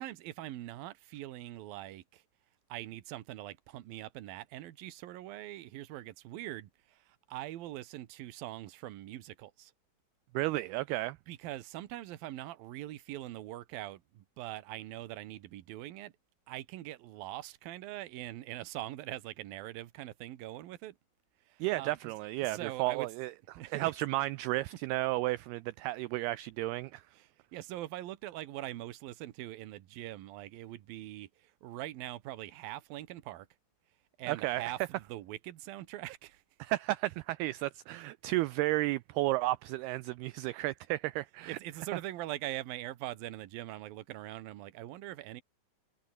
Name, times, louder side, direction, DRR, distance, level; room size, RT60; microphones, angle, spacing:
voice 1, 0.0-2.2 2.7-9.7 11.3-16.1 16.5-21.0 21.5-23.1 23.6-23.9 27.1-33.5 34.2-36.4 41.5-45.4, right 15 dB, 65° right, 2.7 m, -43 dB
voice 2, 10.3-11.2 21.6-23.3 23.7-27.0 34.3-34.7 36.6-41.6, right 18 dB, 90° right, 2.2 m, -33 dB
omnidirectional pair, 5.2 m